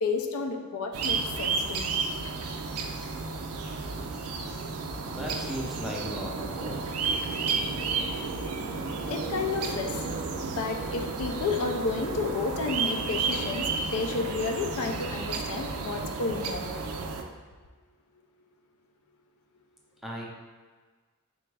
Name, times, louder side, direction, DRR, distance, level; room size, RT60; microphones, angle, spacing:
voice 1, 0.0-1.9 9.1-9.9 10.6-16.7, left 4 dB, 70° left, 3 dB, 0.4 m, -31 dB
sound 1, 0.9-17.2, right 4 dB, 90° right, 0.4 m, -32 dB
voice 2, 5.0-6.8 20.0-20.3, equal, ahead, -3 dB, 0.5 m, -36 dB
3.9 x 2.3 x 4.6 m, 1.4 s
head